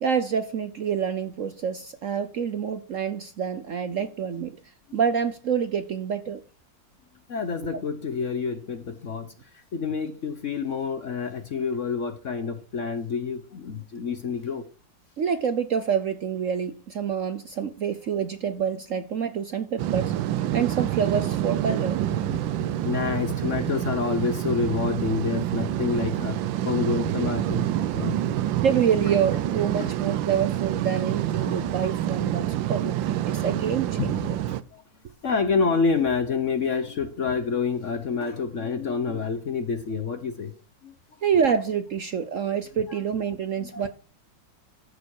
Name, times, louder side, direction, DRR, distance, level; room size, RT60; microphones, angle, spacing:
voice 1, 0.0-4.6 4.9-6.4 15.2-20.1 20.5-22.1 28.6-34.3 41.2-43.9, right 7 dB, 55° right, 0.9 m, -27 dB
voice 2, 7.3-9.3 9.7-14.6 22.1-26.4 26.6-27.6 27.9-28.3 29.8-29.9 31.4-31.9 34.0-34.2 34.5-34.6 35.2-40.5 43.6-43.9, left 5 dB, 50° left, 1.0 m, -28 dB
sound 1, 19.8-34.6, right 12 dB, 80° right, 1.4 m, -27 dB
14.0 x 6.8 x 4.7 m
omnidirectional pair, 2.1 m